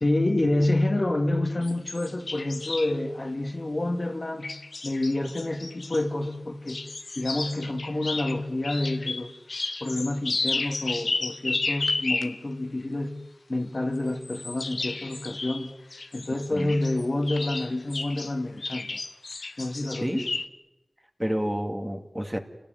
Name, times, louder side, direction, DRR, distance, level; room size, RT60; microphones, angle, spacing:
voice 1, 0.0-4.5 4.8-6.8 7.2-9.4 9.8-13.2 13.5-15.7 16.1-19.0 19.6-20.3, left 2 dB, 50° left, 2.3 m, -28 dB
sound 1, 1.6-3.0 4.4-6.0 6.7-12.4 14.1-18.3 18.6-20.5, left 3 dB, 80° left, 1.1 m, -32 dB
voice 2, 16.5-16.8 20.0-20.3 21.2-22.4, equal, 10° right, 2.4 m, -29 dB
28.5 x 19.0 x 9.5 m
wide cardioid pair, 65°, 0 cm